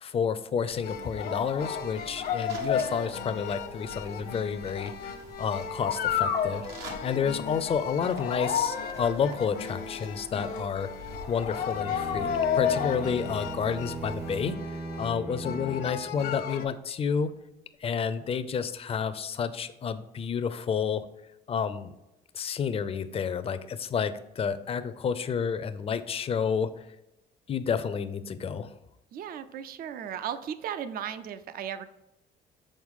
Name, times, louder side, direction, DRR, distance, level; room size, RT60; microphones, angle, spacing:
voice 1, 0.0-6.7 7.0-10.9 11.3-17.3 17.8-21.0 21.5-21.9 22.3-26.7 27.5-28.7, left 6 dB, 35° left, 12 dB, 0.5 m, -30 dB
sound 1, 0.7-14.5, right 2 dB, 80° right, 1.3 m, -49 dB
sound 2, 0.8-16.6, left 8 dB, 75° left, 0.9 m, -33 dB
Bowed string instrument, 11.6-16.4, right 2 dB, 15° right, 0.5 m, -38 dB
voice 2, 29.1-31.9, right 9 dB, 60° right, 12 dB, 0.6 m, -36 dB
6.3 x 4.4 x 3.7 m, 0.92 s
cardioid pair, 110°, 17 cm